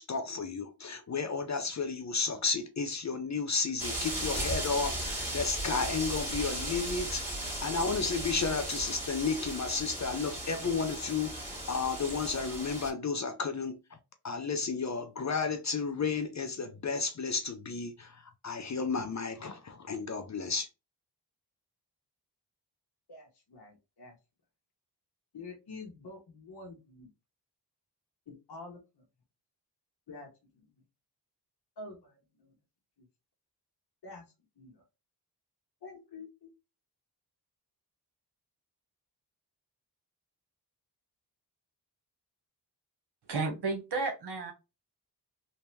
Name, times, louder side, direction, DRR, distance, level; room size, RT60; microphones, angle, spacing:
voice 1, 0.0-13.8 14.2-20.7, left 4 dB, 45° left, 0.6 m, -33 dB
sound 1, 3.8-12.9, right 1 dB, 5° right, 2.1 m, -36 dB
voice 2, 23.1-24.2 25.3-27.1 28.3-29.0 30.1-30.7 31.8-32.6 33.0-33.1 34.0-34.2 34.6-34.8 35.8-36.5, left 3 dB, 70° left, 1.1 m, -48 dB
voice 3, 43.2-44.5, right 3 dB, 75° right, 1.2 m, -32 dB
3.3 x 2.8 x 3.1 m
wide cardioid pair, 85°, 40 cm